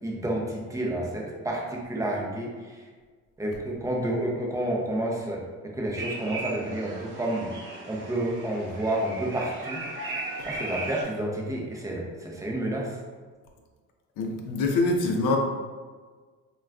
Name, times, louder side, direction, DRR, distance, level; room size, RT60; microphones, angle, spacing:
voice 1, 0.0-2.8 3.4-7.5 7.9-9.8 10.4-13.0, right 1 dB, 10° right, -2 dB, 0.5 m, -30 dB
sound 1, 6.0-11.0, right 2 dB, 35° right, 0.9 m, -37 dB
voice 2, 14.2-15.4, left 3 dB, 80° left, 2 dB, 0.5 m, -25 dB
2.3 x 2.2 x 3.4 m, 1.5 s
cardioid pair, 115°, 31 cm